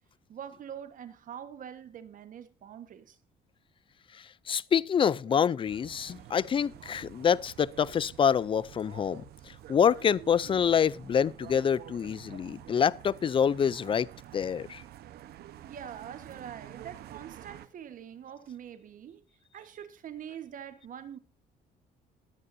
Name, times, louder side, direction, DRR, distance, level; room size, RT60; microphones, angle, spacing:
voice 1, 0.3-3.2 5.3-5.4 15.6-19.2 19.5-21.2, right 9 dB, 50° right, 1.4 m, -44 dB
voice 2, 4.2-14.1 14.3-14.8, left 7 dB, 30° left, 0.5 m, -26 dB
sound 1, 5.6-17.7, right 12 dB, 70° right, 1.1 m, -49 dB
20.0 x 9.7 x 2.7 m
cardioid pair, 110°, 17 cm